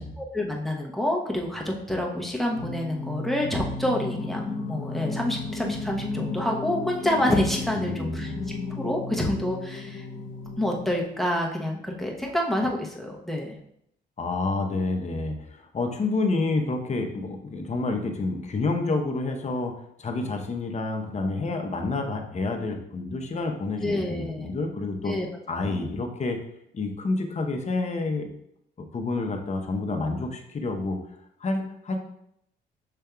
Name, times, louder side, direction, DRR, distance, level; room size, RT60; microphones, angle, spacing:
voice 1, 0.2-10.0 10.6-13.6 23.8-24.5 25.1-25.3 25.5-25.9, left 1 dB, ahead, -1 dB, 0.9 m, -28 dB
Singing, 2.5-11.4, left 3 dB, 85° left, 0.8 m, -34 dB
voice 2, 7.8-8.4 14.2-19.7 20.0-25.2 25.5-26.4 26.7-28.3 28.8-31.0 31.4-32.0, left 3 dB, 35° left, 4 dB, 0.8 m, -29 dB
6.7 x 3.4 x 2.3 m, 0.73 s
cardioid pair, 90°, 20 cm